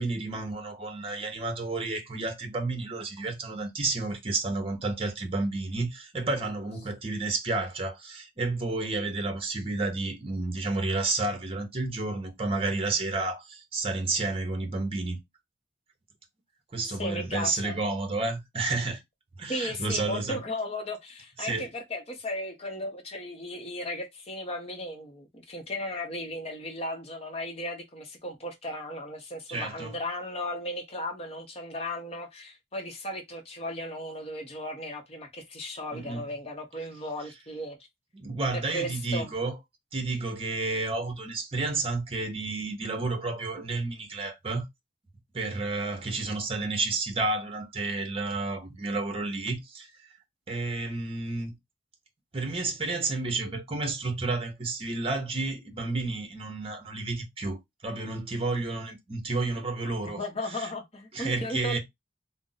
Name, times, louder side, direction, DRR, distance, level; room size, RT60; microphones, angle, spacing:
voice 1, 0.0-15.2 16.7-19.0 19.4-20.4 21.4-21.7 29.5-29.9 35.9-36.2 38.1-39.6 39.9-44.6 45.3-49.9 50.5-51.5 52.3-60.2 60.6-60.7 61.1-61.8, right 3 dB, 30° right, 0.7 m, -31 dB
voice 2, 17.0-17.8 19.5-37.8 38.5-39.3 60.2-61.8, left 1 dB, 35° left, 0.7 m, -36 dB
2.5 x 2.0 x 3.8 m
head